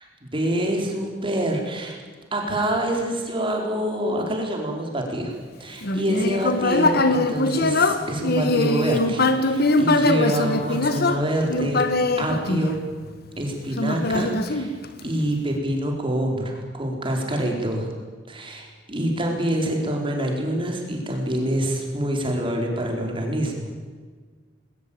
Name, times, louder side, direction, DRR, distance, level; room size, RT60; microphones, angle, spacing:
voice 1, 0.2-2.0 2.3-5.3 5.6-11.9 12.2-12.8 13.4-14.7 15.0-17.9 18.3-23.7, right 1 dB, 30° right, 1 dB, 4.5 m, -26 dB
Human voice, 5.8-13.2 13.8-15.2, left 2 dB, 55° left, 1.7 m, -22 dB
20.5 x 19.5 x 8.9 m, 1.5 s
head